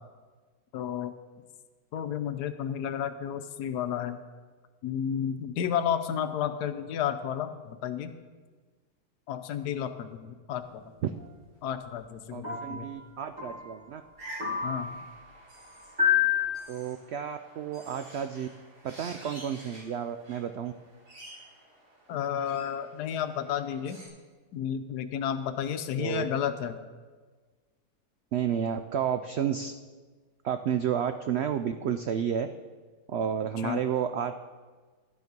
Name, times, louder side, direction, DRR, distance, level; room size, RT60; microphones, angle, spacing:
voice 1, 0.7-1.1 1.9-4.2 4.8-8.1 9.3-10.8 11.6-12.9 14.6-15.0 22.1-24.0 24.5-26.8 33.6-33.8, left 9 dB, 80° left, 10 dB, 1.2 m, -32 dB
sound 1, 11.2-11.3 12.4-12.9 13.4-13.8 14.4-15.0 16.0-16.6, left 8 dB, 30° right, 2.3 m, -28 dB
voice 2, 12.3-14.0 16.7-18.5 18.8-20.7 26.0-26.3 28.3-29.7 30.4-32.5 33.1-34.3, right 8 dB, 90° right, 9 dB, 0.5 m, -31 dB
sound 2, 14.2-24.1, right 1 dB, 75° right, 3.8 m, -49 dB
12.0 x 9.4 x 5.2 m, 1.4 s
omnidirectional pair, 1.7 m